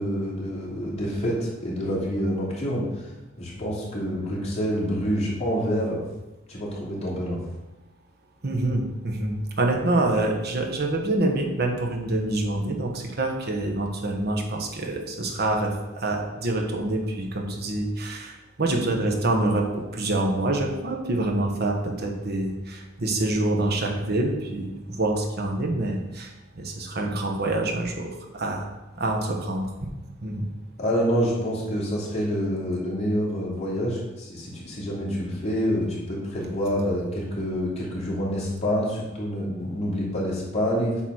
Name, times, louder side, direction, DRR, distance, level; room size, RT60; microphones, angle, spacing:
voice 1, 0.0-3.1 3.4-6.0 6.5-7.4 30.8-41.0, equal, 35° left, -5 dB, 2.7 m, -27 dB
voice 2, 8.4-28.7 29.0-29.7 30.2-30.5, right 2 dB, 55° right, 2 dB, 1.2 m, -26 dB
8.2 x 4.1 x 6.2 m, 1.1 s
head